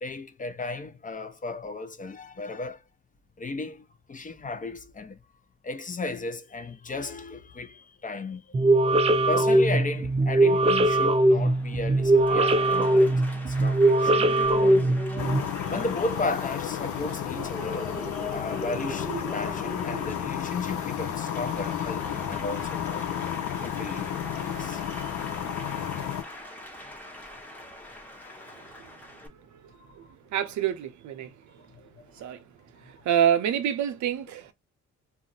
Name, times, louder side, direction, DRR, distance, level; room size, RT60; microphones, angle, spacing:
voice 1, 0.0-2.8 3.4-5.2 5.6-8.7 9.3-15.0 15.7-23.1 23.6-24.8 27.8-28.7 29.9-30.0 31.8-31.9, left 3 dB, 25° left, 0.5 m, -35 dB
sound 1, 8.5-15.4, right 2 dB, 20° right, 0.4 m, -21 dB
Applause, 9.5-29.3, left 1 dB, 5° left, 0.9 m, -41 dB
sound 2, 15.2-26.2, left 9 dB, 75° left, 0.6 m, -32 dB
voice 2, 30.3-31.3 32.2-32.4 33.1-34.5, right 9 dB, 70° right, 0.7 m, -26 dB
2.4 x 2.1 x 3.9 m
cardioid pair, 90°, 30 cm